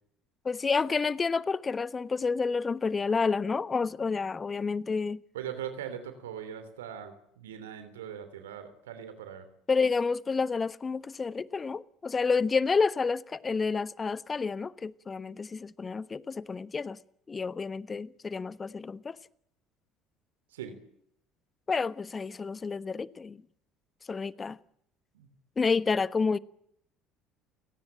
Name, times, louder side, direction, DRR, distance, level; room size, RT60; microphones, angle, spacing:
voice 1, 0.4-5.2 9.7-17.0 17.3-19.2 21.7-23.4 24.1-24.6 25.6-26.4, left 4 dB, 30° left, 1.2 m, -29 dB
voice 2, 5.3-9.5 20.5-20.8 25.1-25.3, right 9 dB, 85° right, 3.1 m, -40 dB
29.5 x 18.5 x 8.9 m
hypercardioid pair, 60°, 0 cm